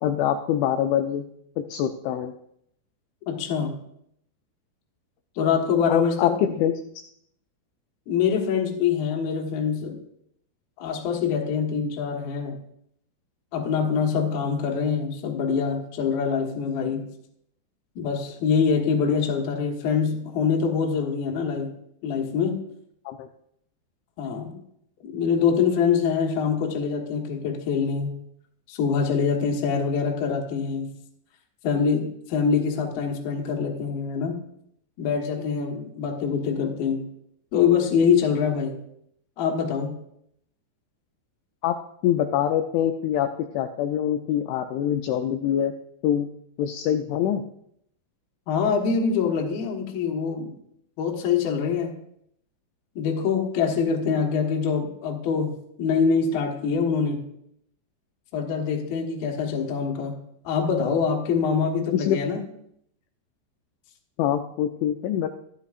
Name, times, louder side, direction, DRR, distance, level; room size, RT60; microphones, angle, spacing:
voice 1, 0.0-1.3 1.6-2.3 5.4-5.6 5.9-6.7 23.1-23.3 41.6-41.8 42.0-43.3 43.5-45.7 46.0-46.3 46.6-47.4 61.7-62.2 64.2-65.3, left 10 dB, 85° left, 6 dB, 2.7 m, -24 dB
voice 2, 3.3-3.8 5.4-6.3 8.1-10.0 10.8-12.6 13.5-17.1 18.0-21.7 22.0-22.6 24.2-24.5 25.0-28.1 28.7-30.9 31.6-34.4 35.0-37.0 37.5-38.8 39.4-40.0 48.5-50.5 51.0-52.0 53.0-57.3 58.3-60.2 60.4-62.4, left 6 dB, 65° left, 1 dB, 2.6 m, -24 dB
14.5 x 12.5 x 2.5 m, 0.71 s
omnidirectional pair, 5.9 m